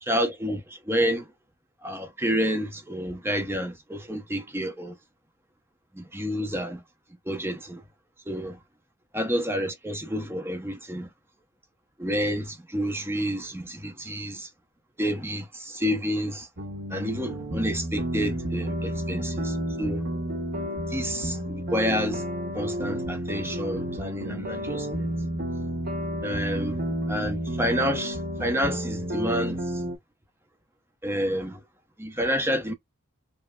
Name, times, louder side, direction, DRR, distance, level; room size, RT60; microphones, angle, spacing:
voice 1, 0.0-1.3 1.8-5.0 5.9-6.8 7.3-7.8 8.3-8.6 9.1-11.1 12.0-14.5 15.0-16.5 16.9-20.0 20.9-22.2 22.5-25.1 26.2-26.8 27.1-29.8 31.0-31.6 32.0-32.7, equal, 10° right, 0.7 m, -29 dB
sound 1, 16.6-30.0, equal, 45° right, 0.9 m, -31 dB
5.1 x 2.1 x 2.3 m
head